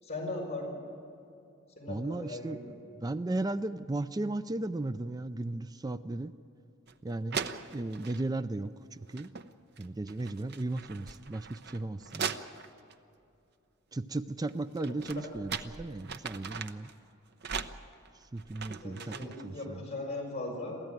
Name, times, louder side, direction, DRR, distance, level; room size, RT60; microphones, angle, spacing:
voice 1, 0.0-0.7 1.8-2.7 14.9-15.0 18.8-20.8, left 2 dB, 30° left, -2 dB, 5.2 m, -38 dB
voice 2, 1.9-2.6 2.9-6.3 7.0-7.4 7.7-9.3 9.8-12.4 13.9-16.9 18.3-19.8, right 2 dB, 20° right, 12 dB, 0.4 m, -35 dB
sound 1, 6.9-7.0 7.3-8.3 9.0-9.5 9.8-12.9 14.5-16.9 17.4-19.5, right 6 dB, 50° right, 0.8 m, -40 dB
23.0 x 15.5 x 9.1 m, 2.6 s
head